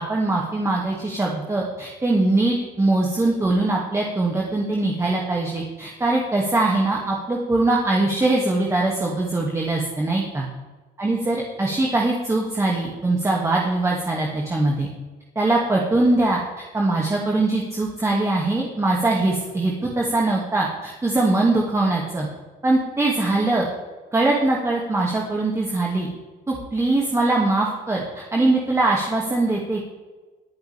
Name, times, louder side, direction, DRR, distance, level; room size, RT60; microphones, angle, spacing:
voice 1, 0.0-10.5 11.0-14.9 15.4-16.4 16.7-22.3 22.6-23.7 24.1-26.1 26.5-29.8, right 2 dB, 15° right, -2 dB, 2.2 m, -22 dB
22.5 x 7.9 x 3.5 m, 1.3 s
cardioid pair, 105°, 20 cm